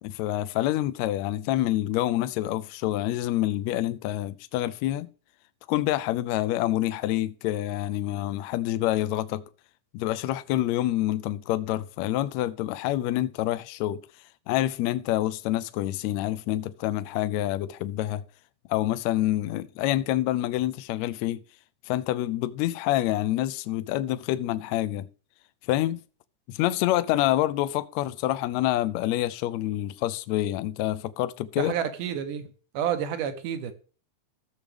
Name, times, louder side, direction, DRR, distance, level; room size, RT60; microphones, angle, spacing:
voice 1, 0.0-5.1 5.7-9.4 9.9-14.0 14.5-18.2 18.7-21.4 21.9-25.1 25.7-26.0 26.5-31.7, left 14 dB, 80° left, 1.7 m, -27 dB
voice 2, 31.6-32.5 32.7-33.7, right 9 dB, 90° right, 2.6 m, -29 dB
14.5 x 7.1 x 3.4 m
omnidirectional pair, 3.6 m